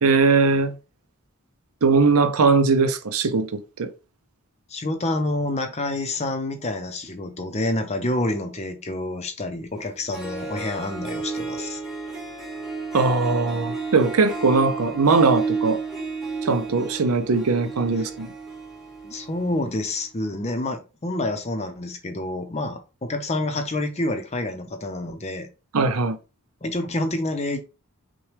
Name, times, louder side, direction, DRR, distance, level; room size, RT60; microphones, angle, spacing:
voice 1, 0.0-0.7 1.8-3.9 12.9-15.8 16.4-18.3 25.7-26.2, right 4 dB, 75° right, 0.6 m, -20 dB
voice 2, 4.7-11.8 18.0-18.1 19.0-25.5 26.6-27.6, left 2 dB, 30° left, 0.6 m, -28 dB
Harp, 9.8-9.9 10.1-19.6, right 4 dB, ahead, 1.0 m, -32 dB
6.0 x 2.3 x 3.2 m
head